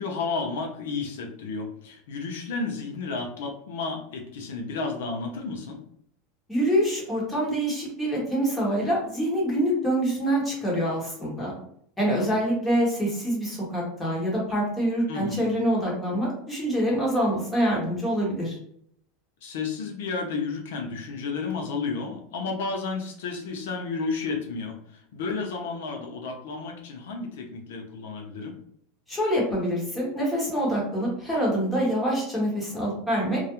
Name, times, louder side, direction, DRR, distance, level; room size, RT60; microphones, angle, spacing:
voice 1, 0.0-5.8 12.1-12.4 15.1-15.5 19.4-28.6, left 4 dB, 85° left, 3 dB, 0.5 m, -32 dB
voice 2, 6.5-11.5 12.0-18.6 29.1-33.4, equal, 5° left, -5 dB, 0.9 m, -25 dB
2.3 x 2.0 x 2.8 m, 0.68 s
supercardioid pair, 150°, 0 cm